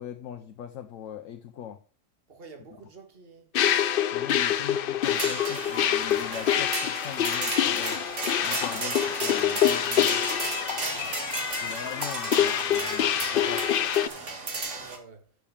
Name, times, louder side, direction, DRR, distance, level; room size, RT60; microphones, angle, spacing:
voice 1, 0.0-1.8 4.1-8.0 8.4-10.2 11.6-13.6, left 9 dB, 75° left, 1.1 m, -41 dB
voice 2, 2.3-3.5 10.7-11.1 14.7-15.3, right 4 dB, 45° right, 1.8 m, -49 dB
sound 1, 3.5-14.1, left 10 dB, 60° left, 0.6 m, -26 dB
sound 2, 5.0-15.0, right 3 dB, 65° right, 2.1 m, -34 dB
6.9 x 6.1 x 7.1 m
omnidirectional pair, 1.4 m